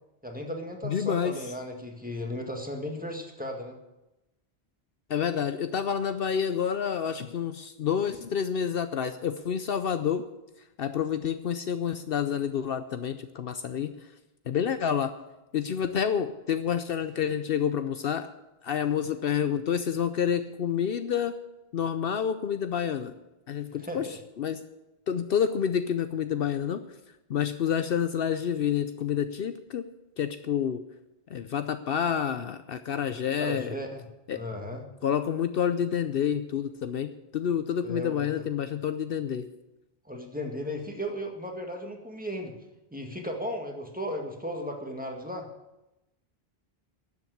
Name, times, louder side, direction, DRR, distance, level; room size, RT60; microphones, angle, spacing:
voice 1, 0.2-3.8 23.7-24.2 33.4-34.1 34.3-34.8 37.8-38.3 40.1-42.5 42.9-45.5, equal, 10° right, 2 dB, 1.8 m, -35 dB
voice 2, 0.8-1.4 5.1-10.2 10.8-13.9 14.5-15.1 15.5-18.3 18.6-21.4 21.7-23.1 23.5-24.1 24.4-24.6 25.1-26.8 27.3-29.9 30.2-30.8 31.3-33.7 34.3-34.4 35.0-39.5, left 8 dB, 65° left, 10 dB, 0.8 m, -28 dB
12.0 x 7.5 x 9.4 m, 0.97 s
omnidirectional pair, 1.1 m